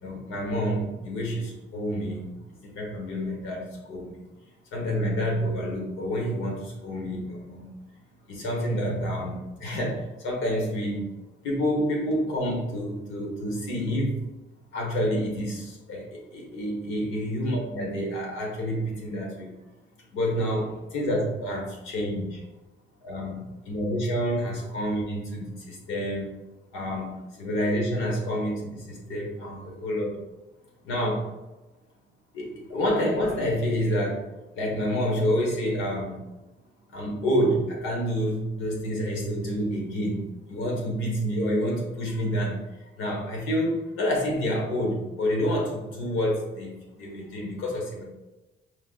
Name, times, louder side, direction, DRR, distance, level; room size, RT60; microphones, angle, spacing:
voice 1, 0.0-4.2 4.7-7.7 8.3-11.1 11.4-14.2 14.7-19.5 20.1-22.4 23.0-23.4 23.6-26.3 26.7-30.1 30.8-31.2 32.3-34.2 34.5-36.2 36.9-42.6 43.0-48.0, equal, 90° left, -1 dB, 1.4 m, -28 dB
4.8 x 2.2 x 3.9 m, 1.0 s
cardioid pair, 90°, 20 cm